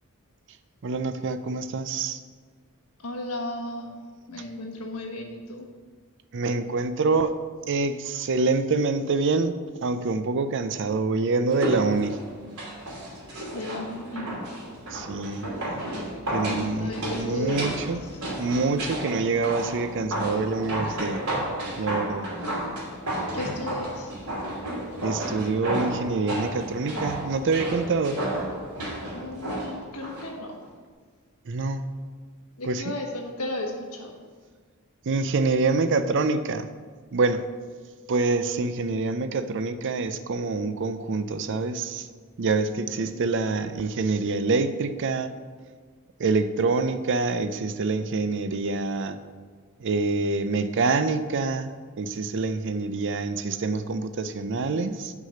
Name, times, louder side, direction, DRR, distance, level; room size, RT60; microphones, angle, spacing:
voice 1, 0.8-2.2 6.3-7.3 7.7-9.5 9.8-12.2 14.9-15.5 16.3-18.1 18.4-21.2 21.8-22.3 25.0-28.2 31.5-32.0 32.6-32.8 35.1-36.7 37.1-37.5 38.1-42.1 42.4-45.3 46.2-49.2 49.8-55.1, right 3 dB, 55° right, 11 dB, 0.5 m, -26 dB
voice 2, 3.0-4.0 4.3-5.7 13.5-14.3 16.4-17.9 23.3-24.1 29.1-30.6 32.6-34.1 43.0-43.3, left 2 dB, 90° left, 1 dB, 1.4 m, -34 dB
sound 1, 11.5-30.3 30.6-30.7, right 1 dB, 80° right, 2.7 m, -32 dB
6.1 x 5.7 x 6.7 m, 1.5 s
head